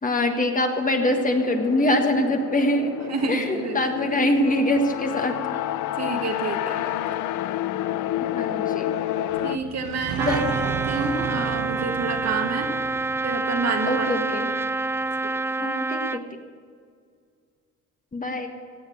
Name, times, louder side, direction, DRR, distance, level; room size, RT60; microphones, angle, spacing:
voice 1, 0.0-2.9 3.3-5.4 8.3-8.9 10.3-10.4 13.9-14.5 15.6-16.2 18.1-18.5, left 1 dB, 25° left, 4 dB, 1.5 m, -23 dB
sound 1, 1.0-9.6, left 13 dB, 80° left, 0.6 m, -29 dB
voice 2, 3.1-3.9 6.0-7.2 9.4-10.5 10.8-12.7 13.2-14.1 14.5-14.7 15.6-15.7, right 4 dB, 60° right, 3 dB, 1.9 m, -29 dB
sound 2, 9.3-15.0, right 8 dB, 75° right, 0.9 m, -35 dB
Trumpet, 10.2-16.2, right 3 dB, 10° right, 0.3 m, -27 dB
16.5 x 7.3 x 7.9 m, 2.2 s
cardioid pair, 90°, 30 cm